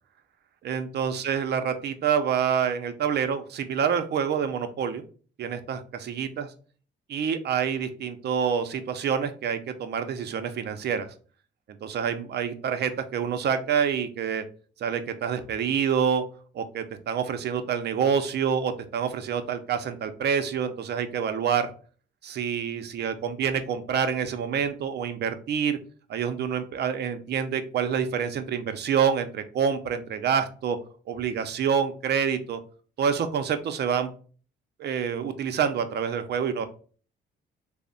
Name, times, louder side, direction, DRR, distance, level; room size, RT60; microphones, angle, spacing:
voice 1, 0.6-5.0 5.4-6.5 7.1-11.1 11.8-14.4 14.8-16.2 16.5-21.7 22.2-25.8 26.1-30.8 31.1-32.6 33.0-34.1 34.8-36.7, right 7 dB, 60° right, 9 dB, 0.5 m, -27 dB
3.3 x 2.1 x 3.8 m, 0.41 s
cardioid pair, 90°, 20 cm